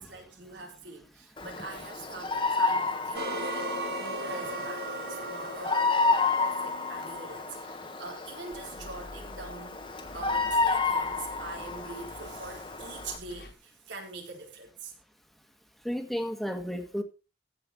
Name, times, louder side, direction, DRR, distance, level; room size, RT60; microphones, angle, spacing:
voice 1, 0.0-3.7 4.0-9.9 10.1-14.9, right 3 dB, 85° right, 4.2 m, -44 dB
Bird vocalization bird call bird song, 1.4-13.2, left 3 dB, 30° left, 1.4 m, -31 dB
sound 1, 3.1-8.1, right 1 dB, 60° right, 1.7 m, -37 dB
sound 2, 8.5-13.5, left 1 dB, 60° left, 2.4 m, -49 dB
voice 2, 15.8-17.0, equal, ahead, 1.8 m, -32 dB
15.0 x 5.7 x 5.6 m
head